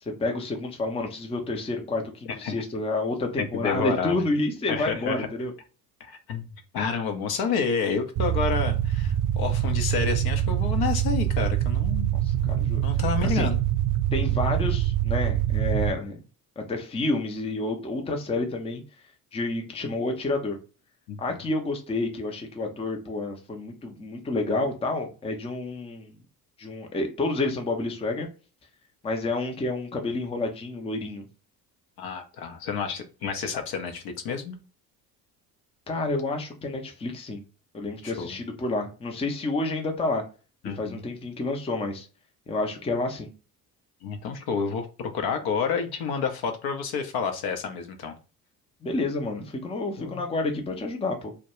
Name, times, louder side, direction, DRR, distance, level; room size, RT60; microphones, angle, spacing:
voice 1, 0.0-5.5 12.1-12.8 13.2-13.5 14.1-16.2 16.6-18.8 19.3-20.6 21.2-26.2 26.6-28.3 29.0-31.3 35.9-37.4 37.7-40.2 40.8-42.1 42.5-43.3 48.8-51.3, left 2 dB, 15° left, 3 dB, 0.6 m, -29 dB
voice 2, 3.5-4.3 4.7-5.3 6.0-12.1 12.8-13.6 21.1-21.4 32.0-34.6 38.0-38.4 40.6-41.0 44.0-48.1 50.0-50.1, left 6 dB, 50° left, 6 dB, 0.7 m, -29 dB
sound 1, 8.2-15.9, right 12 dB, 40° right, 0.4 m, -25 dB
2.2 x 2.2 x 2.9 m, 0.34 s
hypercardioid pair, 60°, 47 cm